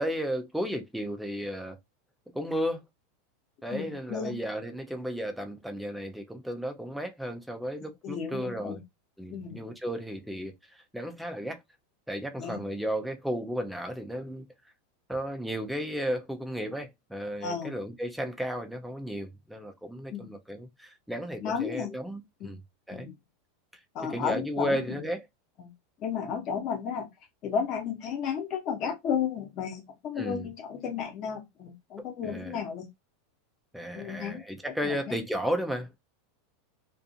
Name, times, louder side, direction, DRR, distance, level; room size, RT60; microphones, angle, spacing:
voice 1, 0.0-1.8 2.3-2.8 3.6-8.8 9.2-11.6 12.1-14.5 15.1-22.6 22.9-23.1 24.0-25.2 30.2-30.5 32.2-32.6 33.7-35.9, equal, ahead, 0.4 m, -34 dB
voice 2, 3.7-4.3 8.0-8.8 9.3-9.7 12.4-12.6 17.4-17.8 20.1-20.3 21.4-21.9 22.4-22.5 22.9-23.1 23.9-25.0 25.6-25.7 26.0-27.1 27.4-32.9 33.9-34.4 34.8-35.1, left 7 dB, 35° left, 0.9 m, -33 dB
2.4 x 2.4 x 2.7 m
supercardioid pair, 160°, 0 cm